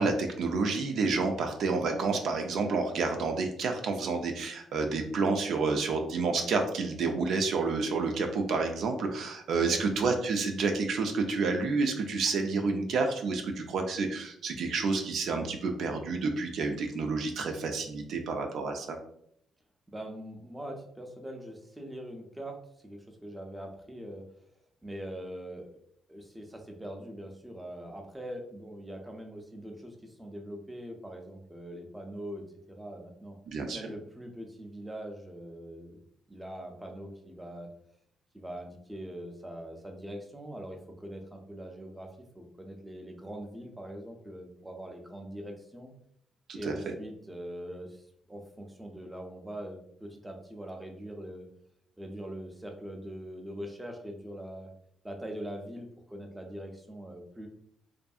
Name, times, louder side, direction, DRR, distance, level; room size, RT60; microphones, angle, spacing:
voice 1, 0.0-19.0 33.5-33.8 46.5-46.7, right 4 dB, 70° right, 5 dB, 0.4 m, -29 dB
voice 2, 19.9-22.6 22.8-24.3 24.8-25.7 26.1-33.4 33.7-36.0 36.3-37.7 38.3-45.9 46.5-51.5 52.0-54.7 55.0-57.5, right 1 dB, 10° right, 2 dB, 0.5 m, -42 dB
2.6 x 2.5 x 2.3 m, 0.70 s
cardioid pair, 90°, 0 cm